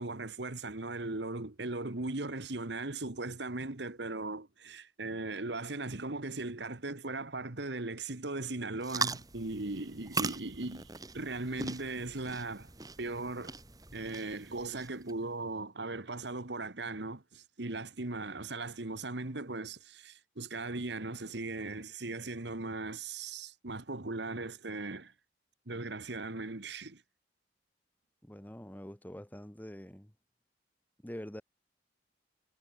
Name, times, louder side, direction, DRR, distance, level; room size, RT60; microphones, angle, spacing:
voice 1, 0.0-12.7 13.0-13.5 13.9-25.1 25.7-27.0, right 2 dB, 65° right, 1.6 m, -38 dB
sound 1, 8.8-15.1, right 4 dB, 20° right, 2.6 m, -40 dB
voice 2, 28.2-30.1 31.0-31.4, equal, 10° left, 1.2 m, -45 dB
head